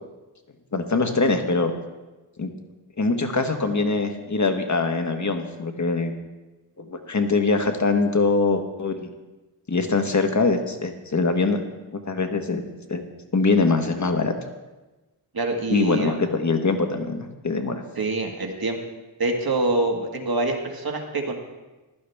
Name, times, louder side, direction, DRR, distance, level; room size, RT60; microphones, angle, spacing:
voice 1, 0.7-1.7 2.4-2.5 3.0-6.1 6.8-9.1 9.7-11.6 12.0-12.6 12.9-13.0 13.3-14.3 15.7-17.8, left 3 dB, 35° left, 6 dB, 1.3 m, -23 dB
voice 2, 15.3-16.2 18.0-18.8 19.2-21.4, right 2 dB, 50° right, 3 dB, 1.8 m, -25 dB
15.5 x 11.5 x 3.5 m, 1.1 s
wide cardioid pair, 80°, 48 cm